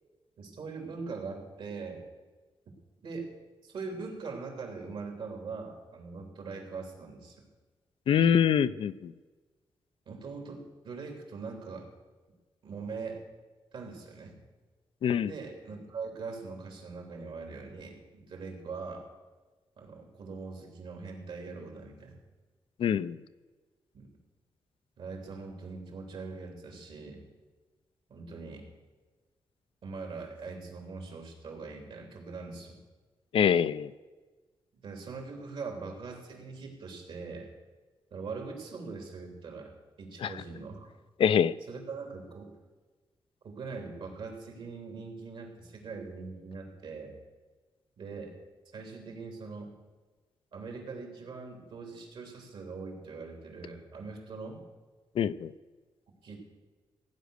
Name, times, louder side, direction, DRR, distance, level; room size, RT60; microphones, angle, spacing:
voice 1, 0.4-2.0 3.0-3.3 3.6-7.5 10.1-11.9 12.6-13.2 13.7-14.4 15.2-19.0 19.8-22.1 23.9-24.1 25.0-27.3 28.1-28.7 29.8-32.8 34.7-37.5 38.1-39.7 40.0-40.9 41.7-42.5 43.4-47.1 48.0-48.3 48.7-49.7 50.5-54.6 56.2-56.4, right 4 dB, 75° right, 2 dB, 3.6 m, -42 dB
voice 2, 8.1-9.1 15.0-15.3 22.8-23.2 33.3-33.9 40.2-40.3 41.2-41.5 55.2-55.5, left 8 dB, 75° left, 14 dB, 0.5 m, -24 dB
16.5 x 9.2 x 6.6 m, 1.3 s
cardioid pair, 90°, 9 cm